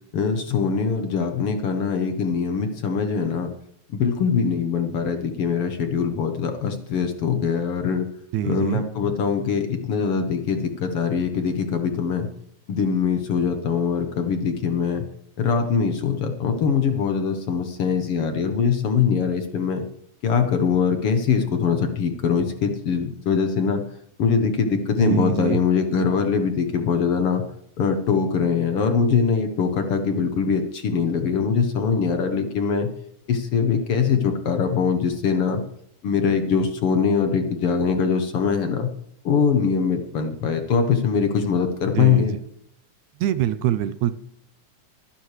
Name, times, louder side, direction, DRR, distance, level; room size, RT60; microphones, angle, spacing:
voice 1, 0.1-3.5 3.9-8.1 8.4-12.3 12.7-15.0 15.4-19.8 20.2-23.8 24.2-27.4 27.8-32.9 33.3-35.6 36.0-38.9 39.3-42.3, left 6 dB, 60° left, 6 dB, 1.7 m, -22 dB
voice 2, 8.3-8.8 25.0-25.6 42.0-42.3 43.2-44.1, right 12 dB, 80° right, 13 dB, 1.9 m, -24 dB
24.0 x 9.7 x 3.3 m, 0.69 s
omnidirectional pair, 3.5 m